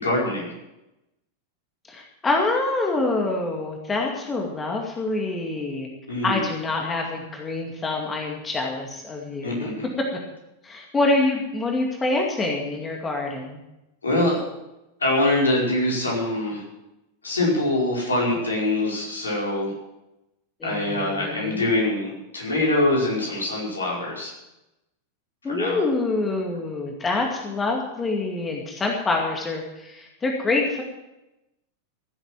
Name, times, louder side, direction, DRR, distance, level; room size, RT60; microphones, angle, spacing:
voice 1, 0.0-0.5 6.1-6.4 9.4-9.9 14.0-14.4 15.0-16.6 17.2-19.7 20.6-24.3 25.5-25.8, left 1 dB, 75° left, -4 dB, 5.1 m, -24 dB
voice 2, 1.9-5.9 6.2-9.7 10.6-13.6 20.6-21.7 25.4-30.8, left 2 dB, 15° left, 1 dB, 2.2 m, -26 dB
16.0 x 8.0 x 7.6 m, 0.93 s
figure-of-eight pair, 90°, 0 cm